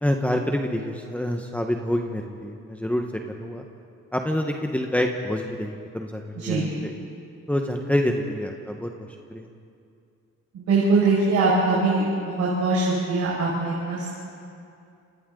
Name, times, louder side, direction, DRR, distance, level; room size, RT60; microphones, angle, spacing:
voice 1, 0.0-3.1 3.4-3.6 4.1-6.9 7.5-9.5, left 1 dB, 5° left, 2 dB, 1.4 m, -27 dB
voice 2, 6.4-6.7 10.5-12.0 12.4-14.1, right 3 dB, 75° right, -6 dB, 6.1 m, -22 dB
29.5 x 26.0 x 4.0 m, 2.5 s
cardioid pair, 90°, 30 cm